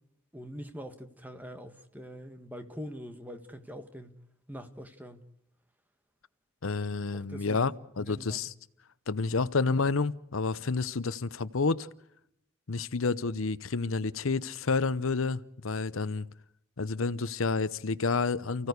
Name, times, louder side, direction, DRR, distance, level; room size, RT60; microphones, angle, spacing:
voice 1, 0.3-4.2 4.5-5.2 7.1-7.7 8.1-8.4, equal, 10° right, 1.7 m, -43 dB
voice 2, 6.6-8.5 9.1-11.9 12.7-16.3 16.8-18.7, left 4 dB, 85° left, 0.8 m, -29 dB
29.5 x 16.0 x 8.2 m
head